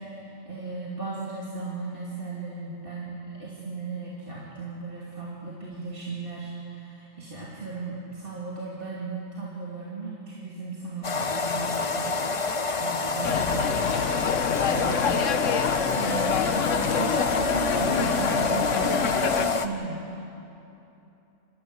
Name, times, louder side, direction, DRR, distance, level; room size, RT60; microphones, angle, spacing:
voice 1, 0.0-13.6 14.5-20.2, right 3 dB, 45° right, -6 dB, 3.0 m, -36 dB
sound 1, 11.0-19.7, left 3 dB, 30° left, 0.7 m, -27 dB
sound 2, 13.2-19.5, left 7 dB, 80° left, 1.2 m, -27 dB
27.5 x 15.0 x 8.1 m, 2.9 s
omnidirectional pair, 1.3 m